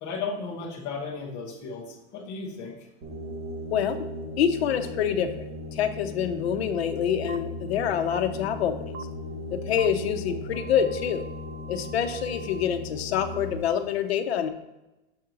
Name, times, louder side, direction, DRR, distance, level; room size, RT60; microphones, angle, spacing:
voice 1, 0.0-2.7, left 4 dB, 10° left, -4 dB, 0.4 m, -35 dB
sound 1, 3.0-13.6, left 1 dB, 30° right, 1.1 m, -37 dB
voice 2, 3.7-4.1 4.4-8.9 9.5-11.2 11.7-14.5, left 8 dB, 65° left, 9 dB, 0.7 m, -26 dB
sound 2, 7.3-7.4 8.1-8.2 8.9-9.0 9.8-9.9 10.5-12.7, right 4 dB, 80° right, 0.6 m, -44 dB
6.9 x 4.3 x 3.7 m, 1.0 s
supercardioid pair, 180°, 33 cm